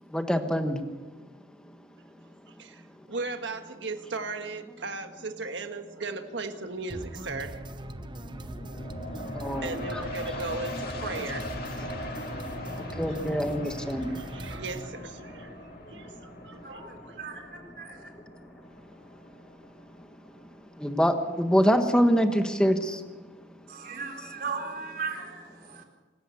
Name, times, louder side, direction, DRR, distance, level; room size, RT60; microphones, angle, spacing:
voice 1, 0.1-0.8 9.3-10.0 12.7-14.3 15.9-16.7 18.1-18.5 19.1-19.3 19.5-19.6 20.0-20.1 20.8-23.0 23.8-23.9, equal, 5° left, 1.4 m, -26 dB
voice 2, 2.5-7.6 9.6-11.5 12.2-12.4 12.7-12.8 14.1-17.2, right 3 dB, 80° right, 1.5 m, -37 dB
sound 1, 6.9-14.9, right 1 dB, 25° right, 0.8 m, -41 dB
sound 2, 7.7-20.6 21.0-21.1, left 1 dB, 55° left, 2.6 m, -40 dB
voice 3, 16.6-18.0 23.7-25.8, right 5 dB, 55° right, 4.1 m, -37 dB
26.0 x 14.5 x 7.1 m
head